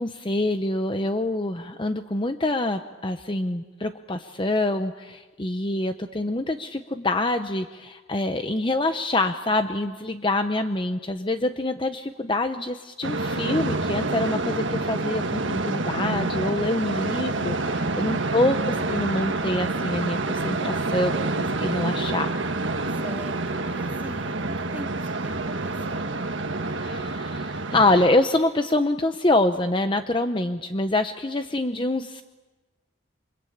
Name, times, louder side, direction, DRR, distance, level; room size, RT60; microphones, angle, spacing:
voice 1, 0.0-22.3 26.8-32.2, left 2 dB, 25° left, 8 dB, 0.8 m, -26 dB
sound 1, 13.0-28.1, right 2 dB, 70° right, 1.5 m, -27 dB
voice 2, 22.9-26.3, equal, 10° right, 3 dB, 2.2 m, -42 dB
28.5 x 24.5 x 8.6 m, 1.3 s
head